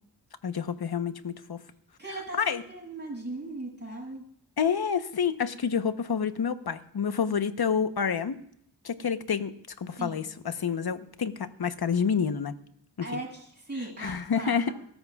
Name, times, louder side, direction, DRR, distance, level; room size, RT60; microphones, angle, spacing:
voice 1, 0.4-1.6 2.4-2.6 4.6-8.4 8.8-12.5 13.0-13.1 14.0-14.7, left 6 dB, 60° left, 10 dB, 1.0 m, -28 dB
voice 2, 2.0-4.2 9.9-10.2 13.0-14.7, right 2 dB, 25° right, -4 dB, 7.2 m, -38 dB
23.0 x 13.5 x 2.4 m, 0.69 s
cardioid pair, 55°, 42 cm